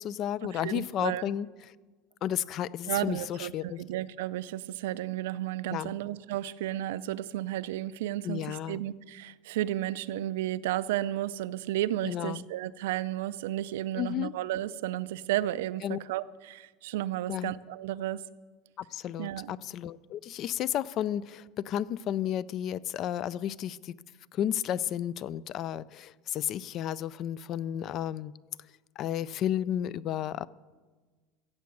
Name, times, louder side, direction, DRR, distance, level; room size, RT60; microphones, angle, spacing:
voice 1, 0.0-1.5 2.2-3.8 5.7-6.0 8.2-8.8 12.0-12.5 14.0-14.3 15.8-16.0 17.3-17.5 18.8-23.9 24.3-28.3 29.0-30.5, left 10 dB, 35° left, 21 dB, 0.3 m, -32 dB
voice 2, 0.5-1.3 2.9-18.2 19.2-19.5, right 14 dB, 90° right, 15 dB, 0.5 m, -33 dB
15.0 x 7.5 x 8.6 m, 1.4 s
supercardioid pair, 165°, 0 cm